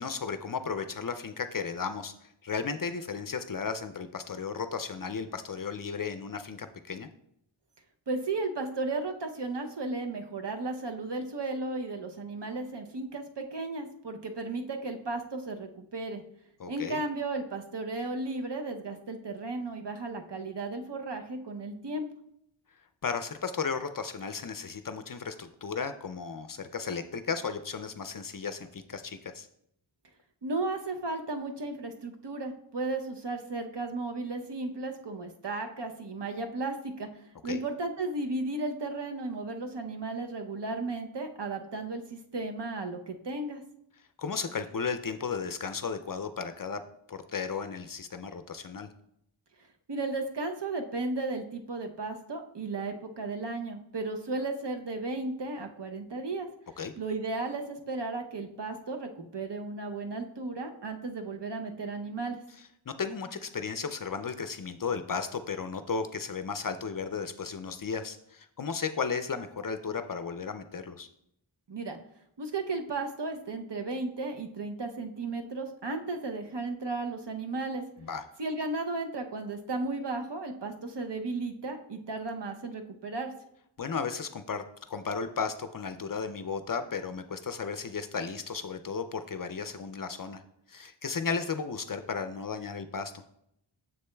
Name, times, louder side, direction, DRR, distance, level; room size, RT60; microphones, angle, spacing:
voice 1, 0.0-7.1 16.6-17.0 23.0-29.5 37.4-37.6 44.2-46.8 47.1-48.9 56.8-56.9 62.9-71.1 78.0-78.2 83.8-90.4 90.7-93.2, left 5 dB, 45° left, 10 dB, 0.4 m, -34 dB
voice 2, 8.1-16.2 16.7-22.1 30.4-37.1 37.4-43.6 49.9-56.5 57.0-62.4 71.7-72.0 72.4-77.8 78.4-83.3, right 3 dB, 60° right, 5 dB, 0.8 m, -34 dB
6.9 x 6.7 x 2.2 m, 0.75 s
wide cardioid pair, 50°, 48 cm